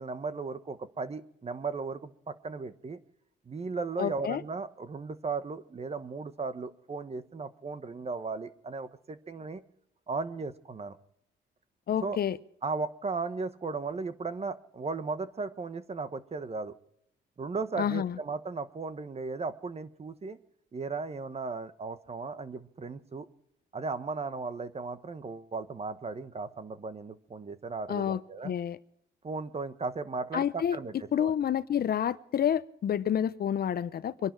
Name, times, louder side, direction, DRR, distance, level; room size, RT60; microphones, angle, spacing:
voice 1, 0.0-3.0 3.5-9.6 10.1-11.0 12.0-12.2 12.6-16.7 17.4-20.4 20.7-23.3 23.7-28.5 29.2-31.3, right 4 dB, 30° right, 1.2 m, -36 dB
voice 2, 4.0-4.4 11.9-12.4 17.8-18.2 27.9-28.8 30.3-30.8 31.1-34.3, left 9 dB, 50° left, 0.7 m, -29 dB
24.5 x 11.0 x 4.6 m
cardioid pair, 90°, 20 cm